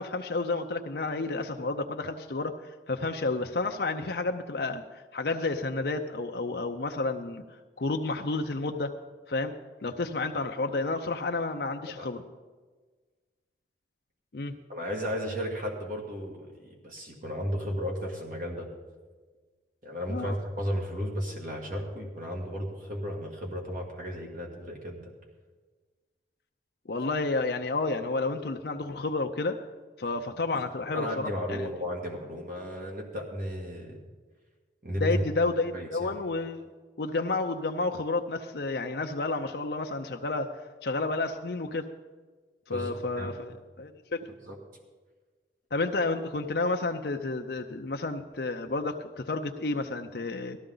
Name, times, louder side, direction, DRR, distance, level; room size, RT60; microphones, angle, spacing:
voice 1, 0.0-2.5 2.9-7.4 7.8-8.9 9.3-9.5 9.8-12.2 14.3-14.5 20.1-20.4 26.9-29.6 30.0-31.7 35.0-36.7 37.0-40.5 40.8-41.9 42.7-44.2 45.7-50.6, left 3 dB, 65° left, 4 dB, 0.6 m, -30 dB
voice 2, 14.7-16.5 16.8-18.7 19.8-25.0 30.5-30.6 30.9-34.0 34.8-35.2 35.7-36.1 42.7-43.4 44.4-44.6, equal, 50° right, 0 dB, 1.8 m, -34 dB
18.0 x 13.5 x 3.9 m, 1.4 s
head